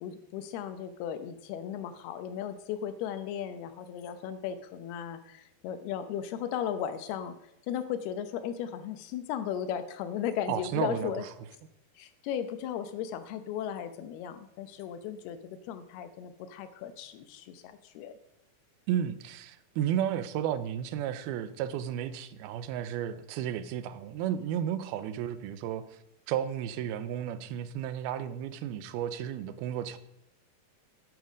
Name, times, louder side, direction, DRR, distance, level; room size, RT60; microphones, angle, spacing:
voice 1, 0.0-7.3 7.7-11.3 12.0-15.4 15.7-18.1, left 9 dB, 85° left, 10 dB, 2.8 m, -36 dB
voice 2, 10.5-11.1 18.9-25.8 26.3-30.0, right 10 dB, 85° right, 13 dB, 2.5 m, -33 dB
10.5 x 9.3 x 5.0 m, 0.82 s
omnidirectional pair, 4.5 m